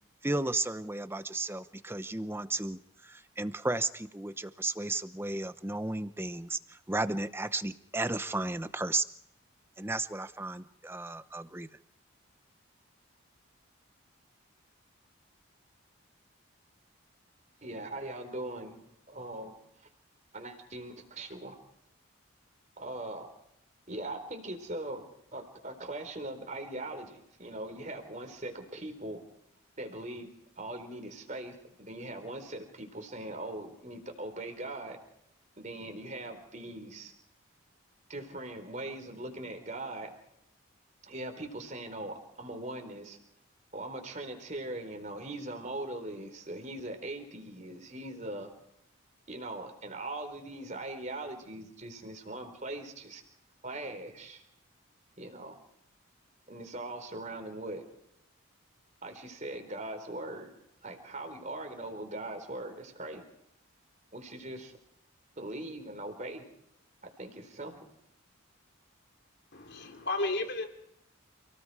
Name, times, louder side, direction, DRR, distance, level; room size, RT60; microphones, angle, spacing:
voice 1, 0.2-9.1 9.8-11.7, right 2 dB, 10° right, 12 dB, 0.8 m, -34 dB
voice 2, 17.6-18.8 19.1-19.9 20.3-21.6 22.8-23.3 23.9-29.2 29.8-30.3 30.6-35.0 35.6-37.1 38.1-40.1 41.0-43.2 43.7-48.5 49.3-53.2 53.6-54.4 55.2-55.6 56.5-57.8 59.0-60.5 60.8-63.3 64.1-64.7 65.4-66.5 67.0-67.9, right 1 dB, 35° right, 5 dB, 4.1 m, -40 dB
voice 3, 69.5-70.7, left 2 dB, 50° left, 5 dB, 3.6 m, -33 dB
30.0 x 18.0 x 4.9 m, 0.78 s
head